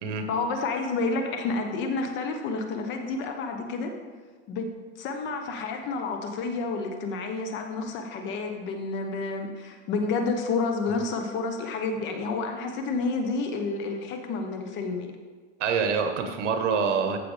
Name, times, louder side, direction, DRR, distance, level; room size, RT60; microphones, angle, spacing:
voice 1, 0.3-3.9 4.5-4.7 5.0-15.1, left 3 dB, 30° left, 5 dB, 1.1 m, -30 dB
voice 2, 15.6-17.2, right 5 dB, 80° right, 6 dB, 1.5 m, -26 dB
14.5 x 6.8 x 3.4 m, 1.4 s
supercardioid pair, 155°, 36 cm